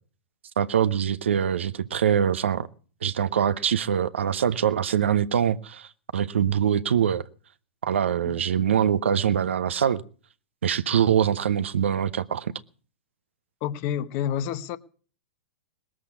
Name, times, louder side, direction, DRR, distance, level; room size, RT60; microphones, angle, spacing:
voice 1, 0.6-2.7 3.0-7.2 7.8-10.0 10.6-12.5, right 8 dB, 80° right, 0.8 m, -23 dB
voice 2, 13.6-14.8, left 9 dB, 45° left, 1.1 m, -29 dB
19.5 x 7.5 x 8.4 m
hypercardioid pair, 110°, 7 cm